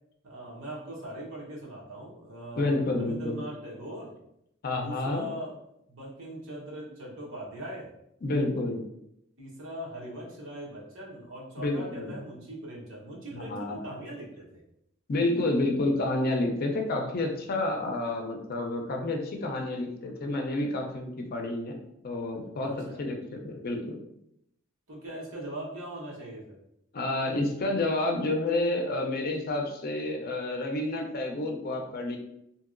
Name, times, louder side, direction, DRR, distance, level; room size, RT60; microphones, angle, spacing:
voice 1, 0.2-4.1 4.8-5.5 5.9-7.9 9.4-14.6 22.6-23.0 24.9-26.6, right 1 dB, 65° right, -4 dB, 1.0 m, -40 dB
voice 2, 2.5-3.4 4.6-5.3 8.2-8.8 11.6-12.2 13.3-13.8 15.1-21.8 22.0-23.9 26.9-32.2, left 2 dB, 50° left, 2 dB, 0.5 m, -29 dB
2.8 x 2.8 x 2.5 m, 0.79 s
head